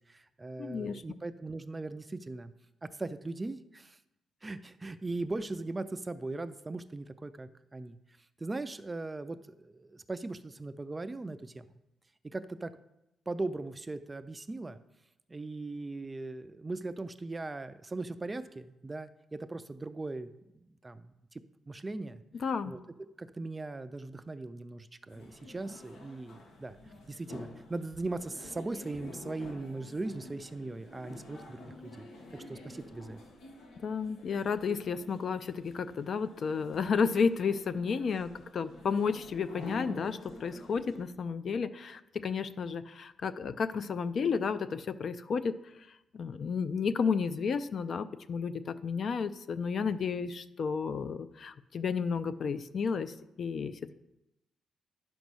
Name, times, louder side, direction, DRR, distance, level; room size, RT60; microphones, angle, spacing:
voice 1, 0.0-2.5 2.8-4.0 4.4-8.0 8.4-11.7 12.3-12.7 13.3-14.8 15.3-21.4 21.7-22.2 22.6-22.8 23.2-26.8 27.1-33.2, right 2 dB, 15° right, 12 dB, 0.4 m, -39 dB
voice 2, 0.6-1.0 22.4-22.7 33.8-45.5 46.1-53.9, left 5 dB, 45° left, 13 dB, 0.4 m, -32 dB
sound 1, 25.1-41.0, left 2 dB, 85° left, 1.8 m, -49 dB
10.5 x 5.3 x 6.2 m, 0.89 s
cardioid pair, 155°, 0 cm